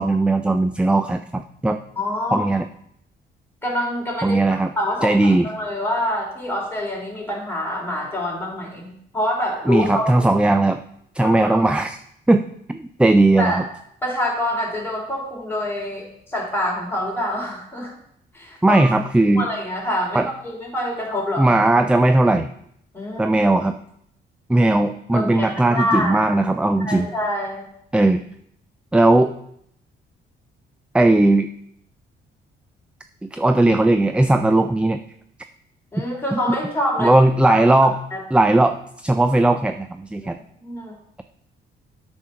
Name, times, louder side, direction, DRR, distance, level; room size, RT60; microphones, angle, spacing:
voice 1, 0.0-1.8 2.3-2.7 4.2-4.7 5.0-5.5 9.7-10.8 11.1-12.0 12.3-12.4 12.7-13.6 18.6-19.5 20.1-20.3 21.4-22.5 23.2-23.8 24.5-27.1 27.9-28.2 28.9-29.3 30.9-31.5 33.2-35.0 36.3-36.4 37.0-38.0 38.3-40.4, right 2 dB, 5° right, 8 dB, 0.4 m, -17 dB
voice 2, 2.0-2.5 3.6-10.4 11.2-11.7 13.4-13.6 14.0-17.9 18.3-18.8 19.2-21.5 22.9-23.3 25.1-26.3 26.8-27.7 35.9-37.1 37.5-38.2 40.6-40.9, left 1 dB, 10° left, -4 dB, 3.5 m, -26 dB
8.4 x 4.5 x 5.8 m, 0.72 s
cardioid pair, 90°, 20 cm